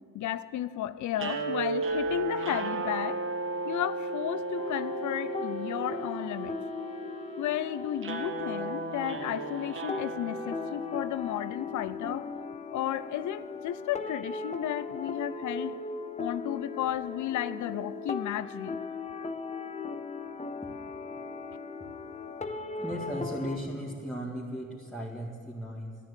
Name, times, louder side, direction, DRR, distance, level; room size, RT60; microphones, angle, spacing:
voice 1, 0.1-3.2 3.6-6.6 7.4-12.3 12.7-15.8 16.2-18.8, left 12 dB, 75° left, 15 dB, 0.6 m, -33 dB
sound 1, 1.1-11.4, right 3 dB, 45° right, 1.4 m, -35 dB
sound 2, 4.6-23.6, left 4 dB, 25° left, 0.9 m, -38 dB
voice 2, 22.7-26.0, equal, ahead, -5 dB, 2.2 m, -36 dB
13.0 x 10.5 x 8.3 m, 2.2 s
cardioid pair, 90°, 30 cm